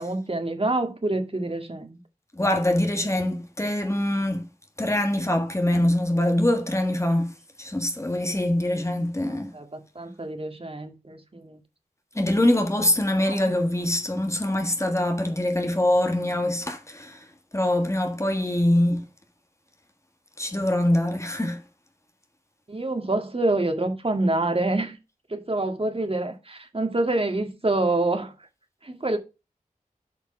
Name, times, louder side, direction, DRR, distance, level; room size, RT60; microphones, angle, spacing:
voice 1, 0.0-2.0 9.5-11.6 13.2-13.4 22.7-25.0 25.3-28.3 28.8-29.2, right 2 dB, 45° right, 2.0 m, -26 dB
voice 2, 2.3-4.4 4.8-7.3 7.6-9.5 12.1-17.2 17.5-19.0 20.4-21.6, left 1 dB, 20° left, 1.6 m, -24 dB
8.2 x 5.2 x 5.7 m
wide cardioid pair, 55°, 14 cm